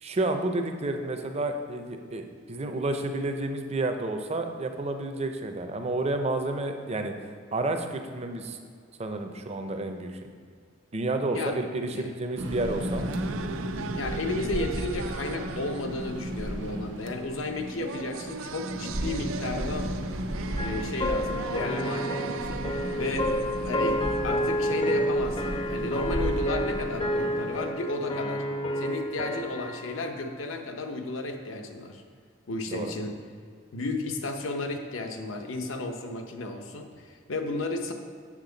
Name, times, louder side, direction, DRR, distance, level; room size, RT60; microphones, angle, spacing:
voice 1, 0.0-7.1 7.5-8.6 9.0-10.2 10.9-13.0 32.7-32.9, right 2 dB, 30° right, 6 dB, 0.6 m, -30 dB
sound 1, 12.4-27.7, equal, 70° right, 0.8 m, -35 dB
sound 2, 12.6-24.5, right 6 dB, 90° right, 0.4 m, -40 dB
voice 2, 13.9-19.9 20.4-23.3 23.6-28.4 28.8-32.0 32.5-33.1 33.7-37.9, left 2 dB, 85° left, 4 dB, 0.8 m, -33 dB
sound 3, 20.6-30.0, equal, 25° left, 0.5 m, -30 dB
7.4 x 6.7 x 3.9 m, 2.1 s
head